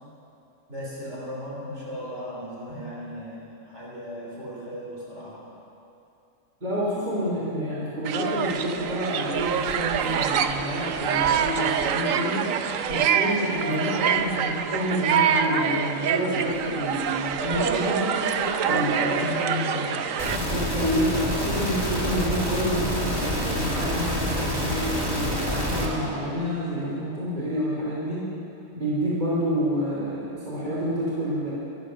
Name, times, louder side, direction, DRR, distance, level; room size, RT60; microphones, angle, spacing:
voice 1, 0.7-5.4 16.1-16.8 17.3-20.0, equal, 60° right, -6 dB, 4.3 m, -34 dB
voice 2, 6.6-12.5 12.9-18.0 18.6-19.2 20.4-28.3 28.7-31.5, equal, 35° right, -7 dB, 3.3 m, -28 dB
sound 1, 8.0-20.4, right 8 dB, 85° right, 1.1 m, -26 dB
sound 2, 20.2-25.9, equal, 20° right, 2.1 m, -27 dB
13.5 x 12.0 x 6.4 m, 2.7 s
omnidirectional pair, 1.3 m